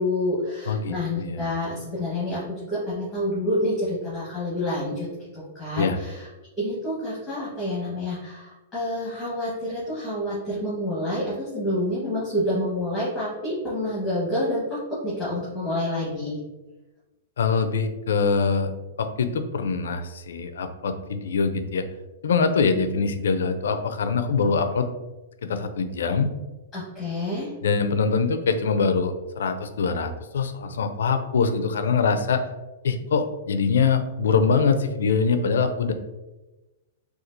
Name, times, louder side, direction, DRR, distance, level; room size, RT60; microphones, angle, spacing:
voice 1, 0.0-5.1 5.3-6.3 6.6-16.4 26.7-27.5, left 1 dB, 10° left, -9 dB, 1.1 m, -28 dB
voice 2, 0.7-1.5 5.8-6.0 17.4-18.7 19.0-21.8 22.2-24.9 25.4-26.3 27.6-32.4 32.8-35.9, left 5 dB, 90° left, 8 dB, 0.4 m, -23 dB
4.2 x 2.3 x 2.6 m, 1.1 s
hypercardioid pair, 160°, 0 cm